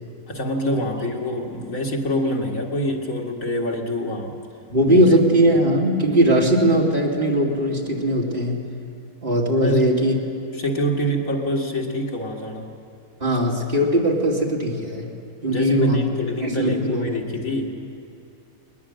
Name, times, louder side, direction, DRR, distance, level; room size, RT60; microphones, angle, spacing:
voice 1, 0.3-4.4 4.9-5.1 9.6-10.0 10.5-12.7 15.5-17.7, equal, 75° left, 0 dB, 2.6 m, -25 dB
voice 2, 4.7-8.6 9.2-10.1 13.2-15.1 15.4-16.0 16.4-17.4, equal, 40° right, -2 dB, 2.7 m, -19 dB
21.0 x 20.5 x 7.6 m, 2.7 s
omnidirectional pair, 1.4 m